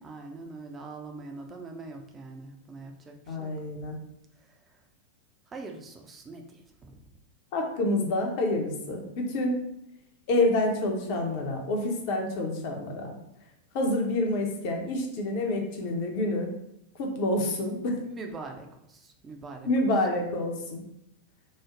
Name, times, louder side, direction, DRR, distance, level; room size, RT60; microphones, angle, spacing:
voice 1, 0.0-3.5 5.5-6.9 18.0-20.1, right 3 dB, 20° right, 3 dB, 0.5 m, -43 dB
voice 2, 3.3-4.0 7.5-9.6 10.3-13.1 13.7-16.5 17.0-18.0 19.6-20.8, left 1 dB, 45° left, 2 dB, 0.7 m, -28 dB
3.1 x 2.0 x 3.7 m, 0.80 s
figure-of-eight pair, 90°, 0 cm